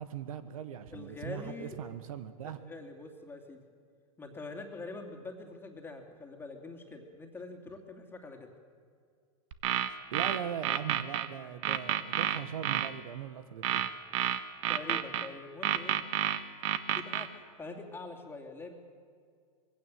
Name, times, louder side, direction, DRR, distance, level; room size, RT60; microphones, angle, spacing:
voice 1, 0.0-2.6 9.9-13.9, right 9 dB, 75° right, 12 dB, 1.4 m, -40 dB
voice 2, 0.9-1.8 2.4-3.6 4.2-8.5 14.7-16.0 16.9-17.3 17.6-18.7, left 3 dB, 10° left, 4 dB, 2.7 m, -44 dB
sound 1, 9.5-11.3 11.6-12.9 13.6-15.3 15.6-17.3, right 11 dB, 55° right, 1.4 m, -30 dB
22.0 x 16.5 x 7.7 m, 2.2 s
hypercardioid pair, 125°, 18 cm